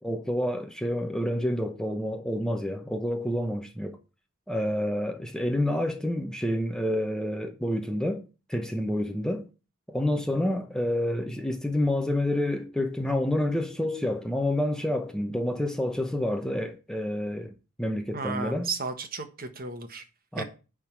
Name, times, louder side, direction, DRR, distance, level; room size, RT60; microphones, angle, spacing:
voice 1, 0.0-4.0 4.5-8.2 8.5-9.4 9.9-17.5 17.8-18.7 20.3-20.4, left 1 dB, 5° left, 0.7 m, -28 dB
voice 2, 18.1-20.0 20.4-20.5, right 4 dB, 45° right, 1.3 m, -34 dB
10.5 x 3.7 x 7.4 m
head